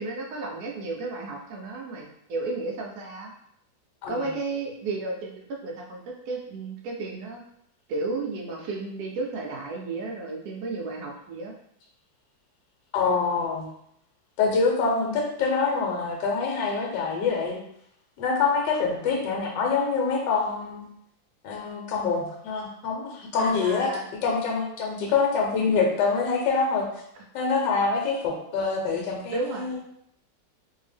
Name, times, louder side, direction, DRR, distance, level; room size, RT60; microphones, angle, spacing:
voice 1, 0.0-3.3 4.1-7.4 7.9-11.5 23.4-24.1 29.3-29.8, right 3 dB, 75° right, 0 dB, 0.9 m, -33 dB
voice 2, 12.9-13.7 14.4-17.6 18.2-20.8 21.4-23.9 24.2-26.8 27.3-29.7, left 4 dB, 75° left, 0 dB, 1.3 m, -25 dB
2.7 x 2.6 x 3.3 m, 0.73 s
omnidirectional pair, 2.0 m